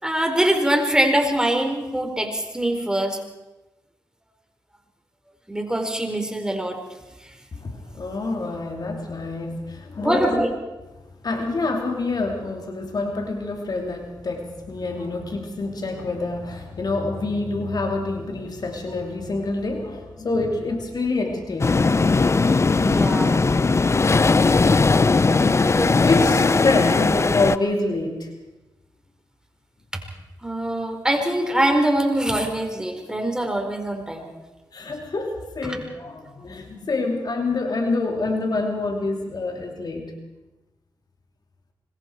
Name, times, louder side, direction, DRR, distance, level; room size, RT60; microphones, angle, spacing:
voice 1, 0.0-3.2 5.5-6.8 10.0-10.5 22.8-23.3 25.8-26.1 30.4-34.4, right 1 dB, 10° right, 3 dB, 4.5 m, -23 dB
voice 2, 7.6-10.5 11.2-22.3 25.8-28.3 34.7-40.1, left 3 dB, 55° left, 3 dB, 2.8 m, -26 dB
sound 1, 21.6-27.6, left 3 dB, 35° left, 0.7 m, -18 dB
25.5 x 22.0 x 4.7 m, 1.1 s
supercardioid pair, 45°, 8 cm